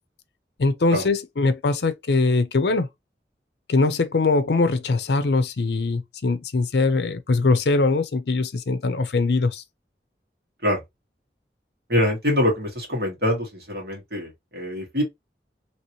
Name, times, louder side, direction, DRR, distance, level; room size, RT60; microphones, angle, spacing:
voice 1, 0.6-2.9 3.7-9.6, left 3 dB, 70° left, 0.5 m, -22 dB
voice 2, 11.9-15.0, left 1 dB, 60° right, 1.6 m, -24 dB
3.0 x 2.9 x 2.8 m
head